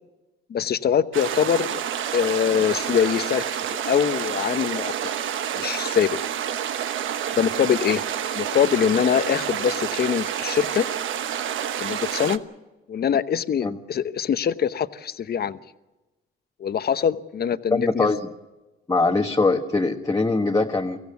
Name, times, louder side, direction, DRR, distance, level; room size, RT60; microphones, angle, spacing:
voice 1, 0.5-1.8 2.1-4.9 5.5-6.2 7.4-8.0 8.3-10.9 11.8-12.4 12.9-15.6 16.6-18.1, left 8 dB, 50° left, 12 dB, 1.0 m, -23 dB
sound 1, 1.1-12.4, right 9 dB, 70° right, 1.1 m, -28 dB
voice 2, 17.7-18.2 18.9-21.0, left 3 dB, 15° left, 1 dB, 1.4 m, -22 dB
24.0 x 16.0 x 8.2 m, 1.1 s
cardioid pair, 90°, 21 cm